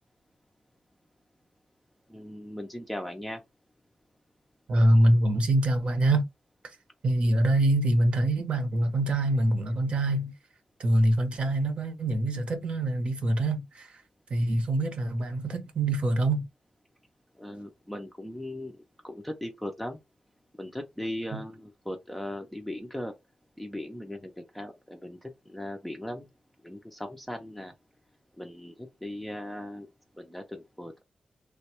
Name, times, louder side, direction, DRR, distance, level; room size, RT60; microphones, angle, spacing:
voice 1, 2.1-3.4 17.4-18.8 19.0-20.0 20.6-23.1 23.6-26.3 26.6-27.7 28.4-29.9 30.1-31.0, left 1 dB, 5° left, 0.5 m, -38 dB
voice 2, 4.7-6.2 7.0-10.3 10.8-14.0 14.3-16.4 21.3-21.4, right 1 dB, 55° right, 0.8 m, -24 dB
3.3 x 2.1 x 2.9 m
wide cardioid pair, 140°, 2 cm